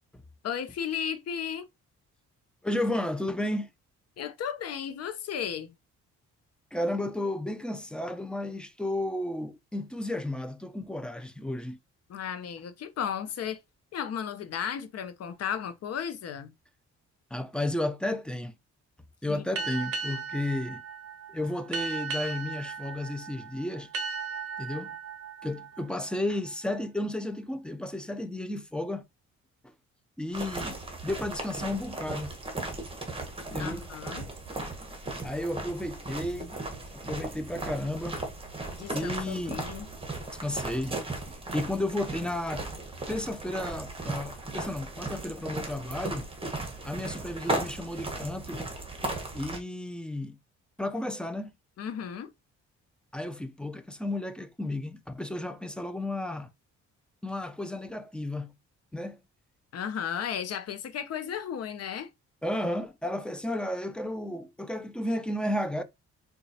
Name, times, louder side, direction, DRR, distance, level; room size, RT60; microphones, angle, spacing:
voice 1, 0.4-1.7 4.2-5.7 12.1-13.6 13.9-16.5 19.3-19.4 33.6-34.3 38.7-39.9 51.8-52.3 59.7-62.1, left 8 dB, 55° left, 0.7 m, -34 dB
voice 2, 2.6-3.7 6.7-11.8 17.3-18.5 19.2-20.8 21.3-23.9 24.6-24.9 25.4-29.1 30.2-30.8 31.0-32.3 33.5-33.8 35.2-36.6 36.9-38.2 38.9-39.7 40.3-41.0 41.3-42.7 43.1-46.3 46.8-48.6 49.3-50.4 50.8-51.5 53.1-56.5 57.2-58.5 58.9-59.2 62.4-65.8, left 1 dB, 5° left, 0.4 m, -33 dB
sound 1, 19.6-26.8, right 4 dB, 50° right, 0.6 m, -37 dB
sound 2, 30.3-49.6, right 2 dB, 20° right, 1.1 m, -36 dB
3.8 x 2.3 x 2.7 m
cardioid pair, 90°, 30 cm